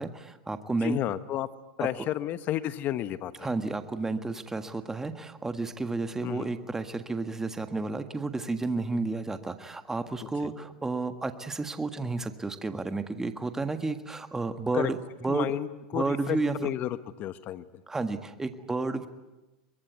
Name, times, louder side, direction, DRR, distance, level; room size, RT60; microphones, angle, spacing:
voice 1, 0.0-1.0 3.4-15.0 15.2-15.5 15.9-16.7 17.9-19.1, right 3 dB, 10° right, 9 dB, 1.7 m, -31 dB
voice 2, 0.8-1.5 1.8-3.5 6.2-6.5 10.4-10.5 14.7-14.9 15.2-17.6, left 13 dB, 45° left, 13 dB, 1.3 m, -32 dB
23.5 x 22.5 x 9.5 m, 1.1 s
supercardioid pair, 120°, 4 cm